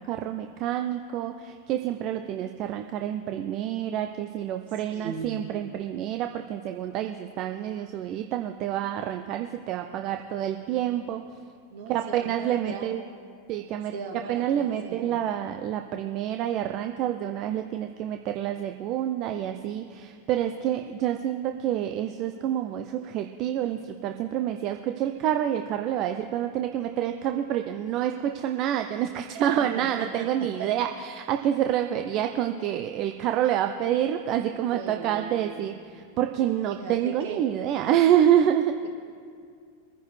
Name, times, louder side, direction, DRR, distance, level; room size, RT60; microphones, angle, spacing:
voice 1, 0.0-11.2 11.9-13.0 13.5-13.9 14.3-38.8, right 10 dB, 45° right, 6 dB, 0.6 m, -27 dB
voice 2, 4.9-5.4 11.7-13.0 13.9-15.2 29.3-30.3 30.6-30.7 34.6-35.6 36.7-37.4, right 5 dB, 65° right, 2 dB, 2.0 m, -38 dB
22.5 x 10.0 x 3.3 m, 2.2 s
hypercardioid pair, 95°, 0 cm